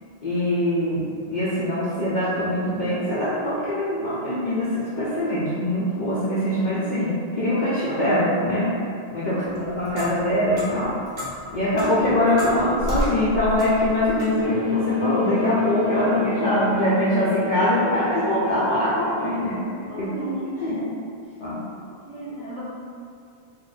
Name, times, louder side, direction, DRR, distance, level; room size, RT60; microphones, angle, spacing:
voice 1, 0.2-8.8 9.1-11.0 11.5-20.1 20.6-20.7 21.4-21.6, left 1 dB, 55° left, -10 dB, 0.6 m, -23 dB
Clock, 9.5-14.4, left 1 dB, 50° right, 0.9 m, -32 dB
sound 1, 14.4-19.4, left 4 dB, 90° left, 0.9 m, -29 dB
voice 2, 19.6-21.0 22.0-22.6, right 1 dB, 5° left, -11 dB, 0.9 m, -34 dB
2.4 x 2.1 x 3.9 m, 2.4 s
omnidirectional pair, 1.0 m